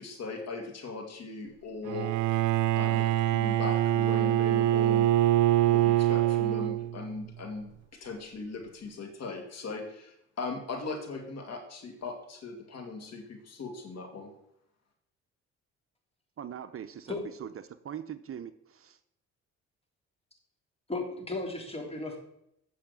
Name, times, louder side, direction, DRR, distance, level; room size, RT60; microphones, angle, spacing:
voice 1, 0.0-2.1 2.8-5.1 5.6-14.3, left 3 dB, 55° left, 4 dB, 2.6 m, -39 dB
Bowed string instrument, 1.9-7.1, right 13 dB, 80° right, 0.5 m, -24 dB
voice 2, 16.4-17.5 17.8-19.0, right 9 dB, 45° right, 12 dB, 0.7 m, -41 dB
voice 3, 20.9-22.2, left 2 dB, 20° left, 1 dB, 3.2 m, -35 dB
8.5 x 6.4 x 8.3 m, 0.76 s
cardioid pair, 90°, 30 cm